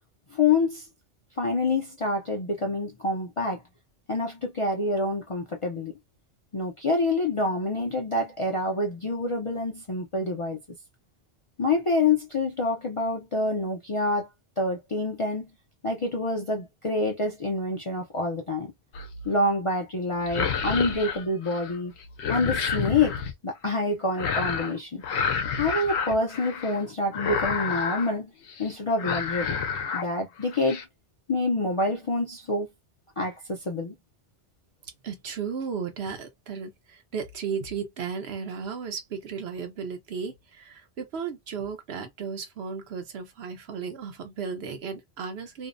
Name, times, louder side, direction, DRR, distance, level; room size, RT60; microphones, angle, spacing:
voice 1, 0.3-0.9 1.4-3.6 4.1-5.9 6.5-10.6 11.6-14.3 14.6-15.5 15.8-18.7 19.2-22.0 22.3-25.0 25.5-28.3 28.6-29.6 29.9-30.8 31.3-32.7 33.2-33.9, left 2 dB, 45° left, 0.4 m, -27 dB
sound 1, 18.9-19.4 20.2-21.8 22.0-23.3 24.2-24.8 25.0-26.8 27.1-28.1 28.5-28.7 29.0-30.1 30.4-30.8, left 6 dB, 80° left, 0.8 m, -29 dB
voice 2, 35.0-45.7, right 6 dB, 70° right, 0.9 m, -35 dB
2.6 x 2.0 x 2.5 m
omnidirectional pair, 1.1 m